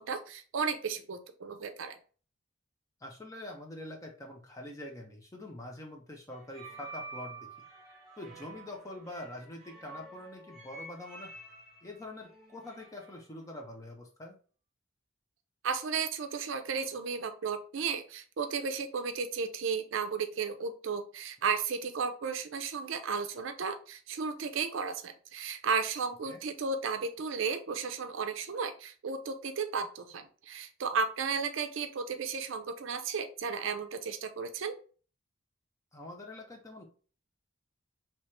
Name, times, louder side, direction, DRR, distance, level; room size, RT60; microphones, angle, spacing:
voice 1, 0.0-2.0 15.6-34.8, right 5 dB, 70° right, 8 dB, 0.5 m, -34 dB
voice 2, 3.0-7.5 8.2-11.3 11.8-14.4 26.3-26.4 35.9-36.8, left 1 dB, 15° left, 1 dB, 0.6 m, -45 dB
sound 1, 6.3-13.2, right 2 dB, ahead, 1.4 m, -49 dB
3.0 x 2.9 x 3.2 m, 0.39 s
head